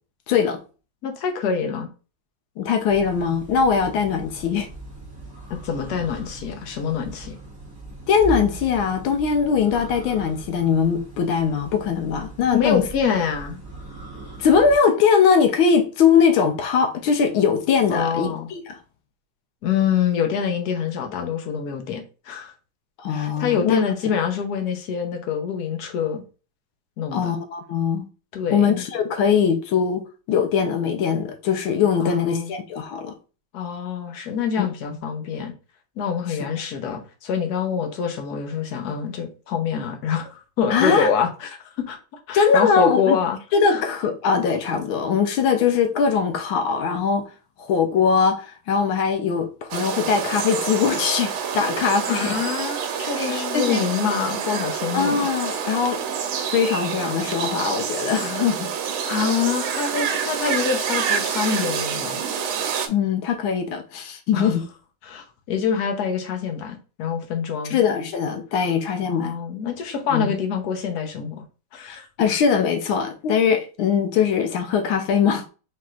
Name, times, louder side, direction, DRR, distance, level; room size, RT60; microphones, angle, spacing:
voice 1, 0.3-0.6 2.6-4.7 8.1-12.8 14.4-18.8 23.0-23.8 27.1-28.0 28.5-30.0 30.3-33.1 34.6-34.7 40.7-41.1 42.3-43.2 43.5-47.3 47.6-52.4 53.2-53.8 54.9-56.0 56.5-58.7 62.9-64.6 67.7-69.3 70.1-70.3 71.8-75.5, left 6 dB, 80° left, 1.6 m, -21 dB
voice 2, 1.0-1.9 5.5-7.3 12.5-13.6 17.9-18.5 19.6-22.5 23.1-26.2 27.0-27.3 28.3-28.8 32.0-32.5 33.5-35.5 36.0-42.0 42.3-43.4 43.7-43.8 52.0-55.2 59.0-62.2 64.3-64.5 65.1-67.8 69.0-71.4 71.7-72.1, left 7 dB, 60° left, 1.2 m, -25 dB
sound 1, 2.8-14.8, right 2 dB, 10° right, 1.6 m, -39 dB
sound 2, 49.7-62.9, right 7 dB, 85° right, 1.6 m, -27 dB
4.3 x 4.1 x 2.4 m
omnidirectional pair, 2.2 m